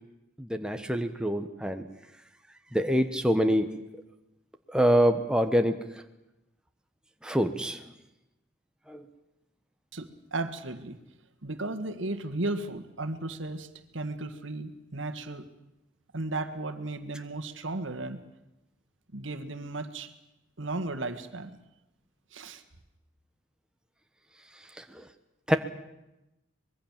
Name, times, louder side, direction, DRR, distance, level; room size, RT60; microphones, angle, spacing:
voice 1, 0.4-1.8 2.7-3.7 4.7-5.8 7.2-7.8 8.9-9.1 24.8-25.0 25.5-25.6, equal, 5° right, 6 dB, 1.2 m, -25 dB
voice 2, 9.9-11.0 11.4-15.5 16.1-18.2 19.1-20.1 20.6-21.6 22.3-22.6, right 2 dB, 75° right, 9 dB, 1.8 m, -35 dB
25.0 x 21.5 x 7.4 m, 0.93 s
head